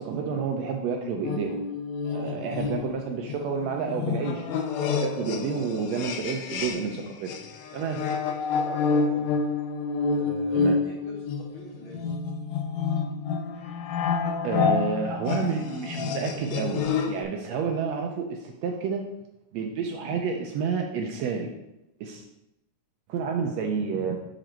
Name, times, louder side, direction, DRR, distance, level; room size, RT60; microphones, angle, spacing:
voice 1, 0.0-1.6 2.0-4.4 4.8-7.3 7.7-8.0 10.5-10.8 14.4-19.1 19.5-21.5 22.0-22.2 23.1-24.2, right 5 dB, 75° right, 2 dB, 1.6 m, -30 dB
sound 1, 1.2-7.0 7.3-17.2, left 5 dB, 80° left, 1.9 m, -28 dB
voice 2, 8.5-9.3 10.1-12.1, left 1 dB, 55° left, -3 dB, 1.5 m, -43 dB
6.1 x 5.0 x 4.4 m, 0.90 s
omnidirectional pair, 3.4 m